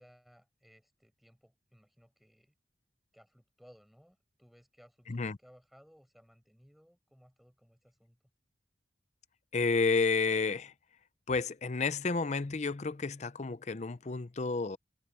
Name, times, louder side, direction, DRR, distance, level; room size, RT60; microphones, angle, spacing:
voice 1, 0.0-2.5 3.1-8.2, equal, ahead, 5.1 m, -61 dB
voice 2, 9.5-10.7 11.3-14.8, left 4 dB, 40° left, 0.6 m, -31 dB
head